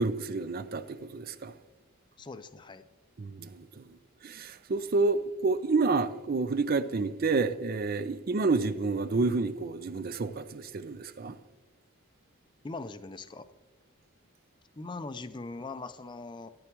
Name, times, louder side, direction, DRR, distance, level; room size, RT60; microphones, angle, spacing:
voice 1, 0.0-1.5 3.2-3.9 4.2-11.3, right 3 dB, 40° right, 0.5 m, -29 dB
voice 2, 2.2-2.9 12.6-13.5 14.8-16.5, left 3 dB, 20° left, 0.4 m, -41 dB
13.5 x 9.7 x 3.0 m
head